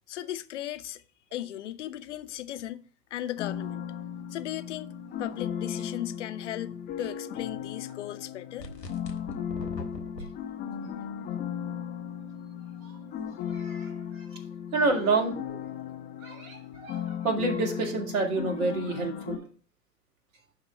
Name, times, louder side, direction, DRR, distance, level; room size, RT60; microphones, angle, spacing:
voice 1, 0.1-1.0 1.3-2.8 3.1-3.8 4.3-4.9 5.2-8.7, left 13 dB, 45° left, 0.8 m, -36 dB
sound 1, 3.4-19.4, left 8 dB, 20° left, 0.9 m, -36 dB
sound 2, 8.6-10.3, left 1 dB, 85° left, 1.8 m, -40 dB
voice 2, 13.5-14.4 14.7-15.6 16.2-19.4, right 3 dB, 55° right, 2.5 m, -29 dB
11.0 x 3.9 x 4.4 m
figure-of-eight pair, 110°, 48 cm